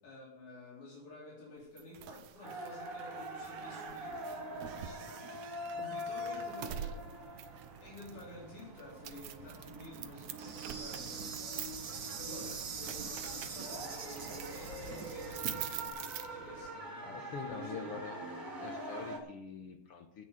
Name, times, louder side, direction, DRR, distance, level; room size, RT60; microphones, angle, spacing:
voice 1, 0.0-18.0, left 1 dB, 75° left, -5 dB, 5.4 m, -52 dB
sound 1, 1.8-16.7, right 10 dB, 75° right, 2.0 m, -47 dB
sound 2, 2.4-19.2, equal, 25° right, 3.3 m, -44 dB
Insect, 10.4-15.9, right 5 dB, 60° right, 1.0 m, -43 dB
voice 2, 17.0-18.3 18.6-20.2, left 6 dB, 60° left, 6 dB, 1.7 m, -44 dB
16.5 x 7.0 x 6.4 m, 0.82 s
omnidirectional pair, 3.5 m